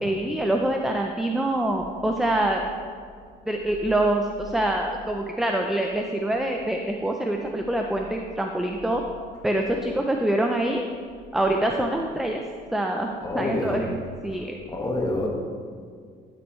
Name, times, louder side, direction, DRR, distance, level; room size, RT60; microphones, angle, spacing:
voice 1, 0.0-2.7 3.5-9.0 9.4-10.8 11.3-12.4 12.7-14.0 14.2-14.6, right 1 dB, ahead, 2 dB, 0.5 m, -25 dB
voice 2, 13.2-13.8 14.7-15.3, left 2 dB, 20° left, 0 dB, 1.5 m, -27 dB
12.0 x 6.2 x 3.1 m, 2.1 s
cardioid pair, 110°, 17 cm